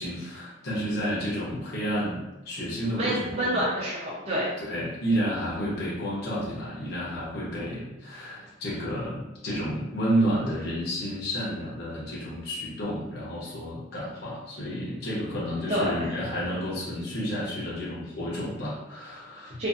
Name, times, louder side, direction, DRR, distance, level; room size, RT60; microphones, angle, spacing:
voice 1, 0.0-3.6 4.6-19.6, equal, 55° left, -7 dB, 0.7 m, -31 dB
voice 2, 2.9-4.5 15.7-16.1 19.6-19.7, equal, 30° right, -7 dB, 0.6 m, -28 dB
2.6 x 2.5 x 2.4 m, 0.99 s
head